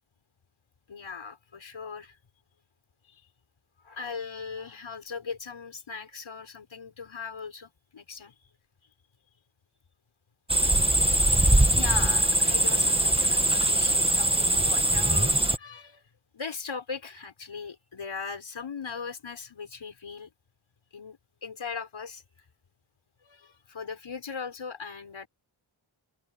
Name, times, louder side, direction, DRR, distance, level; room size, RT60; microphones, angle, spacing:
voice 1, 0.9-2.2 3.1-3.2 3.8-8.3 11.7-16.0 16.3-20.3 20.9-22.2 23.2-25.3, left 5 dB, 65° left, 7.0 m, -39 dB
sound 1, 10.5-15.6, right 1 dB, 10° right, 1.7 m, -22 dB
wide cardioid pair, 80°, 50 cm